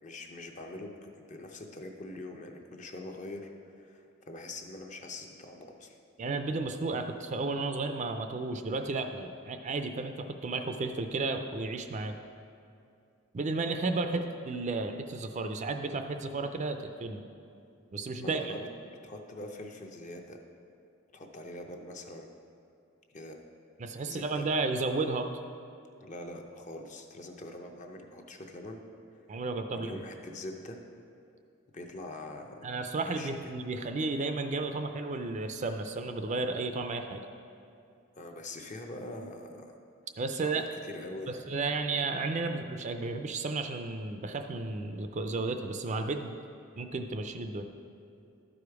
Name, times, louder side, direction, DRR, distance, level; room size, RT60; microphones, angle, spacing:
voice 1, 0.0-3.5 3.8-6.0 18.2-18.7 19.0-20.4 21.1-22.3 23.1-23.4 24.0-24.5 26.0-28.9 29.7-30.8 31.7-32.7 33.0-33.4 38.2-39.8 40.3-41.7, left 1 dB, 35° left, 3 dB, 0.7 m, -43 dB
voice 2, 6.2-12.2 13.3-17.2 17.9-18.5 23.8-25.3 29.3-30.0 32.6-37.2 40.2-40.7 41.3-46.4 46.8-47.7, right 3 dB, 35° right, 7 dB, 0.4 m, -33 dB
12.0 x 5.0 x 4.8 m, 2.5 s
head